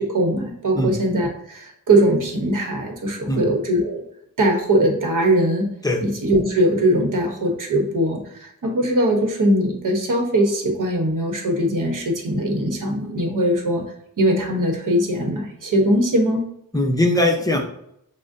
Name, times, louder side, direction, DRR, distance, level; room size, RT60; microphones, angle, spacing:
voice 1, 0.0-4.0 4.4-5.7 6.0-13.8 14.2-16.5, right 1 dB, 60° right, 3 dB, 1.0 m, -21 dB
voice 2, 16.7-17.6, left 1 dB, 10° left, 2 dB, 0.7 m, -20 dB
6.0 x 2.1 x 2.6 m, 0.77 s
wide cardioid pair, 85°, 36 cm